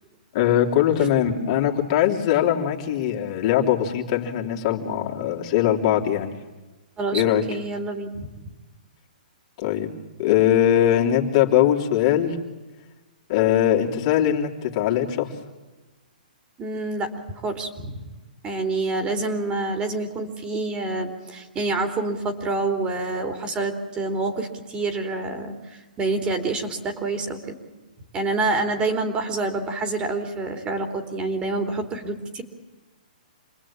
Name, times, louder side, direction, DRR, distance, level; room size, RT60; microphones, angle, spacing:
voice 1, 0.3-6.3 7.1-7.4 9.6-9.9 10.2-12.4 13.3-15.3, left 11 dB, 45° left, 0 dB, 3.4 m, -21 dB
voice 2, 7.5-8.3 16.6-18.0 18.4-27.6 28.1-32.4, right 3 dB, 20° right, 6 dB, 3.5 m, -27 dB
27.5 x 20.5 x 8.8 m, 1.1 s
hypercardioid pair, 130°, 5 cm